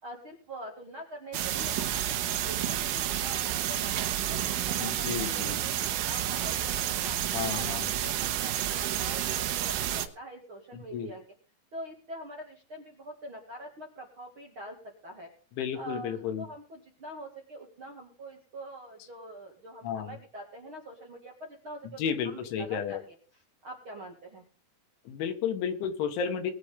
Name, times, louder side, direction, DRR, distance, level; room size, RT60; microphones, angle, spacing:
voice 1, 0.0-4.0 4.3-4.4 4.6-11.2 11.7-14.8 15.0-15.3 15.7-23.2 23.6-24.5, right 1 dB, 40° right, 0 dB, 2.0 m, -44 dB
sound 1, 1.3-10.1, right 11 dB, 80° right, 3.6 m, -30 dB
voice 2, 4.8-5.6 7.3-7.9 10.7-11.1 15.6-16.5 19.8-20.2 22.0-23.0 25.1-26.5, left 7 dB, 75° left, 7 dB, 3.8 m, -32 dB
21.5 x 8.2 x 3.6 m, 0.40 s
omnidirectional pair, 5.5 m